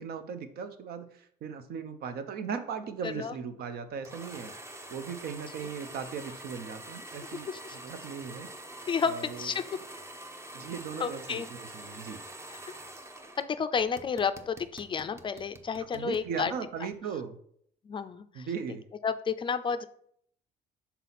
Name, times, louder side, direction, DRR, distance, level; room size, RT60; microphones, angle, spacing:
voice 1, 0.0-4.5 4.9-8.5 9.0-9.5 10.5-12.2 15.8-17.4 18.3-18.8, right 6 dB, 65° right, 10 dB, 0.7 m, -38 dB
sound 1, 4.0-13.4 13.8-16.3, right 1 dB, 15° right, 0.6 m, -45 dB
voice 2, 8.9-9.6 11.0-11.5 12.5-12.7 13.4-16.5 17.9-18.5 19.0-19.9, left 6 dB, 30° left, 11 dB, 0.4 m, -31 dB
5.6 x 4.1 x 4.1 m, 0.66 s
cardioid pair, 110°, 17 cm